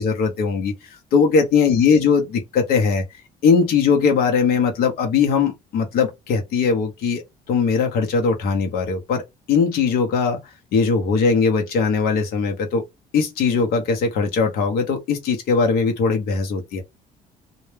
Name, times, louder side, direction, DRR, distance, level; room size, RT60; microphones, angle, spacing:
voice 1, 0.0-3.0 3.4-7.2 7.5-10.4 10.7-12.8 13.1-16.8, left 5 dB, 65° left, 0.6 m, -20 dB
2.1 x 2.0 x 3.1 m
cardioid pair, 110°, 16 cm